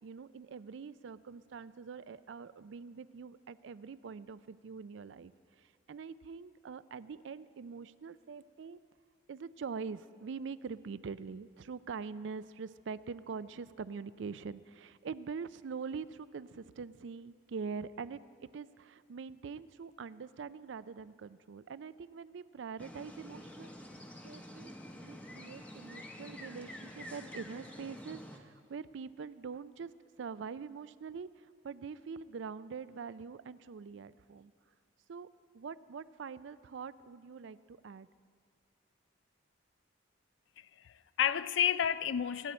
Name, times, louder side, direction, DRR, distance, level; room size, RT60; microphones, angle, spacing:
voice 1, 0.0-5.3 5.6-8.8 9.3-18.2 18.5-23.7 24.2-24.7 25.0-29.9 30.2-34.5 35.1-35.3 35.5-38.1, right 5 dB, 65° right, 0.4 m, -44 dB
sound 1, 22.8-28.4, left 1 dB, 5° left, 0.8 m, -48 dB
voice 2, 40.6-42.5, left 9 dB, 65° left, 0.4 m, -31 dB
26.0 x 9.0 x 4.3 m
head